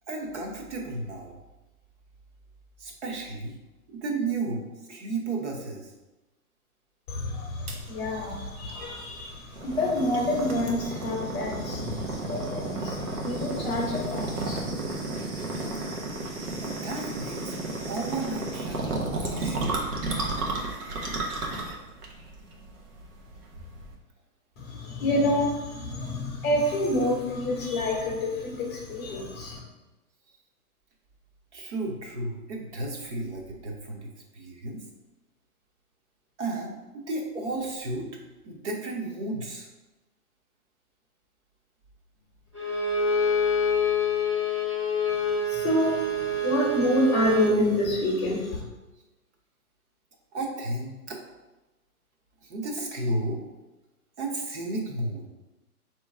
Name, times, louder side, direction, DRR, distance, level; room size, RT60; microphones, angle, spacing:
voice 1, 0.1-1.3 2.8-3.5 3.9-5.9 16.6-17.4 17.9-19.8 31.5-34.8 36.4-38.1 38.4-39.7 50.3-51.2 52.4-53.5 54.2-55.2, right 2 dB, 50° right, 1 dB, 1.0 m, -33 dB
voice 2, 7.1-14.6 24.6-29.6 45.4-48.6, left 1 dB, 15° left, -5 dB, 0.8 m, -28 dB
sound 1, 7.7-23.9, right 2 dB, 85° right, 1.2 m, -33 dB
Bowed string instrument, 42.5-47.6, left 2 dB, 20° right, 0.4 m, -26 dB
4.5 x 3.0 x 3.5 m, 1.1 s
hypercardioid pair, 160°, 45 cm